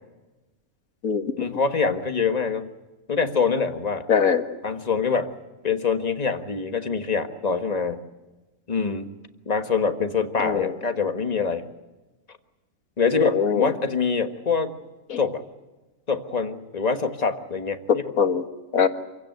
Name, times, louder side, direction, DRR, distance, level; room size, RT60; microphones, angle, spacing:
voice 1, 1.4-2.7 3.1-4.0 4.6-5.3 5.6-8.0 8.7-9.1 9.4-11.6 13.0-14.7 15.2-15.4 16.1-18.0, left 5 dB, 30° left, 7 dB, 1.5 m, -25 dB
voice 2, 4.1-4.4 10.4-10.7 13.1-13.7 15.1-15.2 17.9-18.4 18.7-18.9, left 7 dB, 65° left, 8 dB, 1.9 m, -22 dB
27.0 x 16.5 x 9.2 m, 1.1 s
omnidirectional pair, 1.6 m